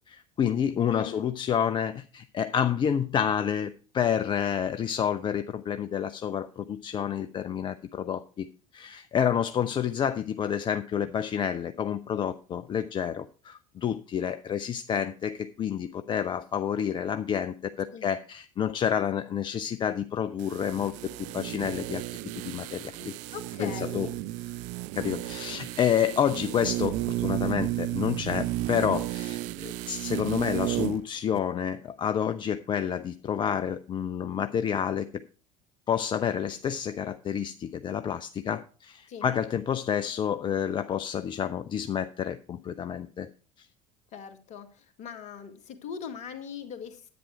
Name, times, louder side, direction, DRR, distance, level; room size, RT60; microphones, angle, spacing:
voice 1, 0.1-8.5 8.7-20.9 21.2-22.0 22.4-23.1 23.6-24.1 24.9-35.1 35.9-43.3, left 8 dB, 30° left, 0.5 m, -29 dB
voice 2, 0.9-1.2 17.9-18.1 23.3-24.1 39.1-39.3 44.1-47.1, left 7 dB, 45° left, 1.7 m, -40 dB
sound 1, 20.4-31.1 31.3-31.4, right 16 dB, 50° right, 0.5 m, -33 dB
10.5 x 8.8 x 4.4 m
figure-of-eight pair, 65°, 17 cm